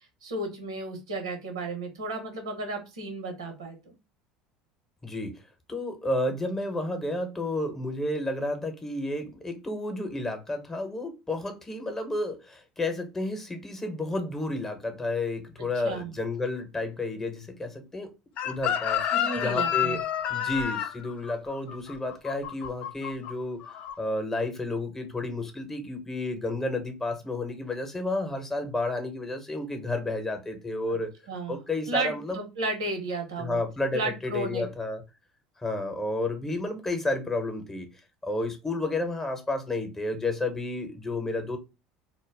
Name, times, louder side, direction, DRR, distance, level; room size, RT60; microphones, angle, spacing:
voice 1, 0.2-3.9 15.8-16.1 19.1-20.0 30.9-31.0 31.3-31.6 31.9-33.6 33.9-34.6, right 2 dB, 85° right, 0.9 m, -33 dB
voice 2, 5.0-5.4 5.7-18.1 18.4-20.0 20.3-23.6 24.0-31.1 31.5-32.4 33.4-35.0 35.6-37.9 38.2-41.6, left 2 dB, 15° left, 0.8 m, -31 dB
Chicken rooster, 18.4-23.3 23.6-23.9, left 10 dB, 55° left, 0.4 m, -29 dB
2.2 x 2.0 x 3.3 m
hypercardioid pair, 75°, 3 cm